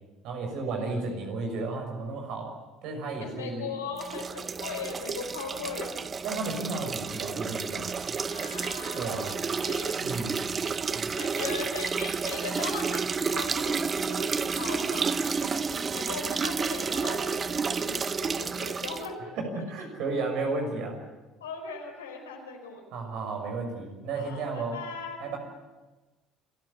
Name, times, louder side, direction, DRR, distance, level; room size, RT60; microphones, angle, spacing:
voice 1, 0.2-2.5 2.8-3.7 6.2-8.2 9.0-9.3 10.0-10.3 10.9-11.1 19.4-20.9 22.9-24.8 25.2-25.4, right 3 dB, 60° right, 3 dB, 6.3 m, -33 dB
voice 2, 3.2-6.0 8.3-9.9 11.2-19.6 21.4-23.2 24.1-25.4, left 5 dB, 80° left, 2 dB, 4.7 m, -39 dB
sound 1, 4.0-19.1, right 5 dB, 35° right, 0.8 m, -31 dB
28.0 x 14.5 x 8.4 m, 1.2 s
figure-of-eight pair, 55°, 0 cm